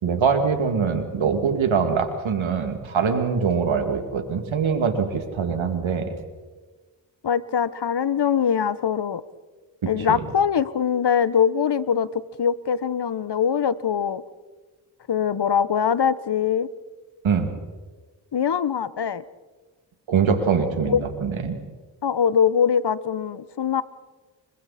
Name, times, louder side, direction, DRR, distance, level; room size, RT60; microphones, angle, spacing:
voice 1, 0.0-6.1 10.1-10.2 17.2-17.5 20.1-21.6, right 6 dB, 85° right, 6 dB, 2.6 m, -23 dB
voice 2, 7.2-9.2 9.9-14.2 15.1-16.7 18.3-19.2 20.9-21.0 22.0-23.8, left 7 dB, 60° left, 16 dB, 1.1 m, -22 dB
30.0 x 23.0 x 4.3 m, 1.4 s
cardioid pair, 40°, 46 cm